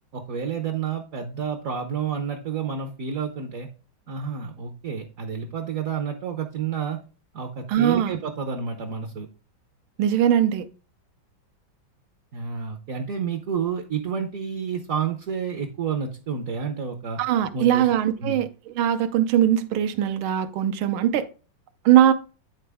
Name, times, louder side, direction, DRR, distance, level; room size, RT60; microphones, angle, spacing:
voice 1, 0.1-3.7 4.1-7.0 7.3-9.3 12.3-17.2 17.5-17.9 18.2-18.4, right 6 dB, 55° right, 1.0 m, -30 dB
voice 2, 7.7-8.2 10.0-10.7 17.2-18.5 18.7-21.3 21.8-22.1, right 10 dB, 80° right, 1.5 m, -20 dB
9.8 x 4.3 x 3.4 m
omnidirectional pair, 2.2 m